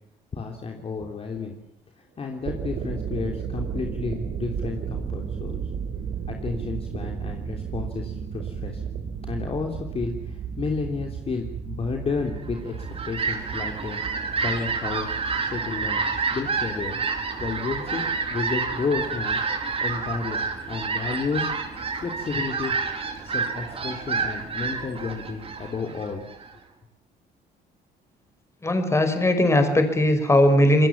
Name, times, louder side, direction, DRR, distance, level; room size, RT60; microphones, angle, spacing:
voice 1, 0.3-1.6 2.2-5.6 6.3-8.8 9.3-14.0 14.4-15.2 15.4-16.0 16.3-17.0 17.4-18.0 18.3-19.4 19.8-20.4 20.7-21.5 22.0-22.7 23.2-26.2, left 4 dB, 35° left, 3 dB, 3.4 m, -31 dB
sound 1, 2.3-21.9, right 7 dB, 60° right, 4.5 m, -35 dB
Fowl, 12.6-26.5, right 5 dB, 35° right, 4.5 m, -29 dB
voice 2, 28.6-30.9, left 1 dB, 15° left, 7 dB, 5.4 m, -19 dB
27.0 x 21.5 x 7.4 m, 0.83 s
cardioid pair, 110°, 17 cm